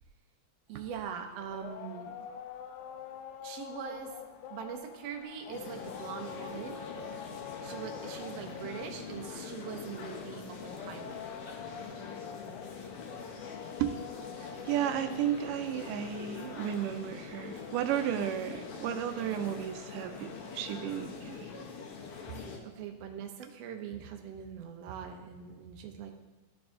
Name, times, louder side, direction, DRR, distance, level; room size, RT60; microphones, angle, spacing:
voice 1, 0.7-2.3 3.4-4.1 4.5-6.8 7.6-11.2 22.6-26.1, right 7 dB, 70° right, 4 dB, 1.7 m, -42 dB
sound 1, 0.8-17.1, left 8 dB, 80° left, 2.1 m, -47 dB
sound 2, 5.5-22.6, left 5 dB, 65° left, 1.5 m, -44 dB
voice 2, 14.4-21.5, right 10 dB, 90° right, 8 dB, 2.2 m, -33 dB
14.0 x 4.7 x 3.8 m, 1.2 s
omnidirectional pair, 3.7 m